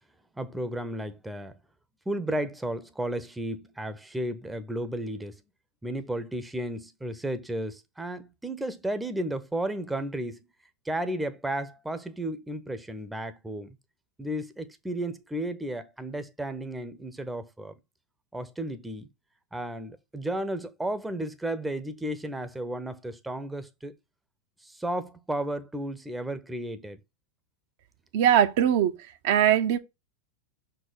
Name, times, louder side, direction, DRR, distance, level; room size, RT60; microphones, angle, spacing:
voice 1, 0.3-1.6 2.1-5.4 5.8-10.5 10.8-13.8 14.2-17.7 18.3-19.1 19.5-24.0 24.6-27.0, right 1 dB, 5° right, 1.0 m, -33 dB
voice 2, 28.1-29.0 29.2-29.8, right 10 dB, 50° right, 0.9 m, -21 dB
6.4 x 4.6 x 6.0 m
figure-of-eight pair, 90°, 0 cm